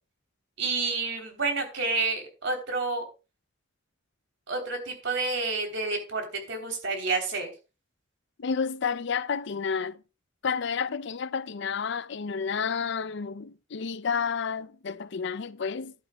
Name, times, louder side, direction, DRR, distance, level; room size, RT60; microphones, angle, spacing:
voice 1, 0.6-3.0 4.5-7.5, right 3 dB, 65° right, 3.4 m, -29 dB
voice 2, 8.4-10.0 10.4-15.9, left 6 dB, 60° left, 0.5 m, -30 dB
15.0 x 11.0 x 2.3 m
head